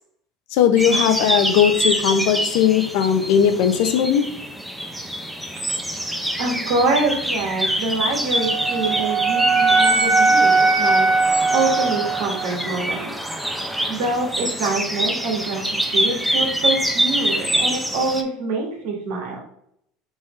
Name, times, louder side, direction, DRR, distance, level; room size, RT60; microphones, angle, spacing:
voice 1, 0.5-4.2, left 8 dB, 75° left, 8 dB, 0.6 m, -18 dB
sound 1, 0.8-18.2, equal, 5° right, 0.5 m, -25 dB
voice 2, 6.4-11.1 11.5-13.1 13.9-19.4, right 3 dB, 75° right, 0 dB, 1.6 m, -25 dB
Wind instrument woodwind instrument, 8.3-12.5, right 3 dB, 40° right, 0.8 m, -19 dB
4.2 x 3.5 x 3.1 m, 0.71 s
supercardioid pair, 115°, 0 cm